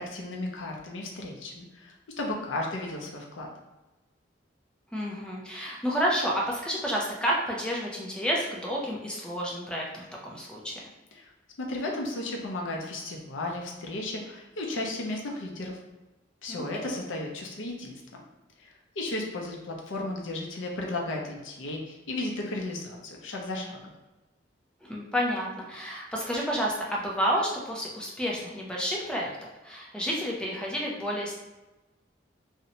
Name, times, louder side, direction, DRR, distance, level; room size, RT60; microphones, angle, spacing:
voice 1, 0.0-3.5 11.1-11.3 11.6-15.8 16.4-18.0 18.6-23.8, left 2 dB, 90° left, 0 dB, 0.5 m, -34 dB
voice 2, 4.9-10.8 16.5-17.0 24.8-29.3 29.6-31.3, equal, 5° left, -3 dB, 0.4 m, -30 dB
2.6 x 2.1 x 2.7 m, 1.1 s
head